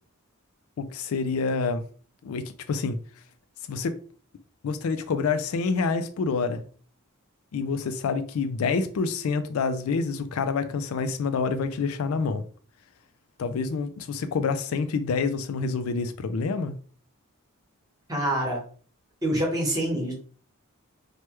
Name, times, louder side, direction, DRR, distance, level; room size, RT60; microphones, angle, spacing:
voice 1, 0.8-1.8 2.2-3.0 3.7-4.0 4.6-6.6 7.5-12.4 13.4-16.7, left 4 dB, 75° left, 0.4 m, -27 dB
voice 2, 18.1-18.6 19.2-20.1, right 1 dB, 15° right, 1.1 m, -26 dB
3.2 x 2.2 x 3.0 m
head